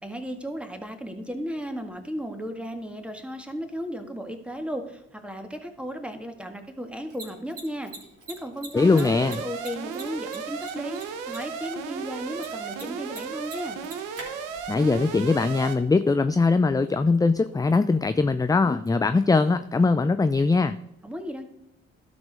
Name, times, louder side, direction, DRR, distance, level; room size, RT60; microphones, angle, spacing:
voice 1, 0.0-7.9 8.3-11.0 11.3-13.8 21.0-21.4, equal, 5° right, 5 dB, 1.7 m, -35 dB
Mechanisms, 6.9-20.5, right 2 dB, 50° right, 3.7 m, -48 dB
voice 2, 8.7-9.4 14.7-20.8, left 3 dB, 10° left, 11 dB, 0.4 m, -21 dB
Alarm, 8.8-15.7, right 6 dB, 85° right, 0.9 m, -35 dB
12.0 x 5.2 x 5.1 m, 0.81 s
supercardioid pair, 50°, 30 cm